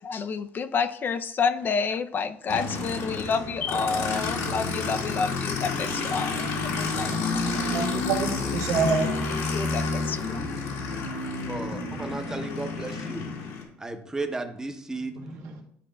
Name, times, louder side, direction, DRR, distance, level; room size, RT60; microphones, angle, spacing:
voice 1, 0.0-7.2 9.5-10.5, left 5 dB, 35° left, 8 dB, 0.4 m, -29 dB
Aircraft, 2.5-13.6, left 3 dB, 85° left, 1.8 m, -30 dB
voice 2, 7.7-9.2 15.2-15.6, right 4 dB, 75° right, 0 dB, 1.4 m, -27 dB
voice 3, 11.5-13.3 13.8-15.2, right 3 dB, 10° right, 5 dB, 0.7 m, -34 dB
10.5 x 5.0 x 2.2 m, 0.68 s
cardioid pair, 125°, 6 cm